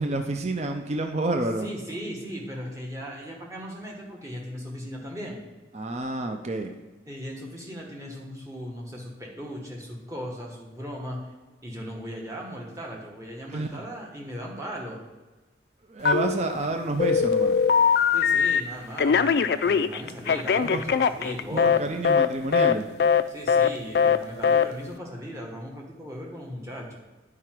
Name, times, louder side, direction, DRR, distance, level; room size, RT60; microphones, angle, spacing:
voice 1, 0.0-1.7 5.7-6.7 13.5-13.8 15.9-17.6 20.6-20.8 21.5-22.9, right 2 dB, 35° right, 5 dB, 0.5 m, -29 dB
voice 2, 1.6-5.4 7.1-11.2 11.6-15.0 18.1-22.0 23.3-27.0, equal, 15° right, -2 dB, 1.4 m, -37 dB
Telephone, 16.0-16.6 17.0-18.6 19.0-21.8 22.0-22.3 22.5-22.7 23.0-23.2 23.5-23.7 23.9-24.2 24.4-24.6, left 6 dB, 55° left, 0.3 m, -21 dB
9.8 x 4.8 x 4.5 m, 1.2 s
head